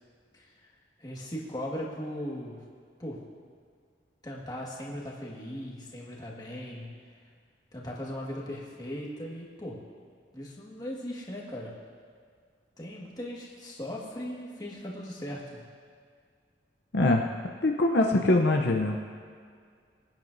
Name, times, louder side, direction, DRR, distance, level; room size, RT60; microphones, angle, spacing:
voice 1, 1.0-2.7 3.0-3.3 4.2-7.1 7.7-9.9 10.3-11.7 12.8-15.7, equal, 20° left, -3 dB, 1.7 m, -38 dB
voice 2, 16.9-17.2 17.6-19.0, left 2 dB, 65° left, 2 dB, 0.7 m, -23 dB
22.5 x 9.0 x 2.7 m, 2.1 s
head